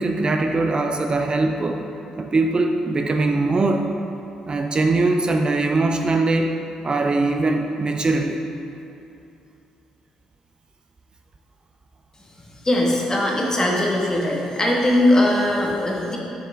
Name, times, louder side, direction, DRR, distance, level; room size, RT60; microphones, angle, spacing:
voice 1, 0.0-1.8 2.2-3.9 4.5-6.5 6.8-8.4, right 3 dB, 35° right, 4 dB, 0.5 m, -21 dB
voice 2, 12.6-16.2, left 1 dB, 25° left, -2 dB, 1.6 m, -20 dB
7.4 x 6.5 x 3.6 m, 2.8 s
hypercardioid pair, 45°, 3 cm